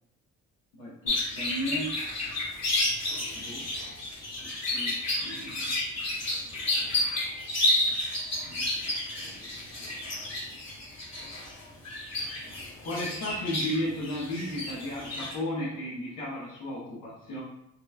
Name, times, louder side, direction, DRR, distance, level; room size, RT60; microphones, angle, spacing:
voice 1, 0.7-1.9 3.3-3.6 4.2-5.0 5.2-5.8 8.4-8.6 9.1-9.4 12.8-17.4, left 1 dB, 85° left, -8 dB, 0.8 m, -35 dB
sound 1, 1.1-15.3, left 2 dB, 60° left, 1.0 m, -31 dB
2.9 x 2.1 x 2.2 m, 0.79 s
cardioid pair, 90°, 30 cm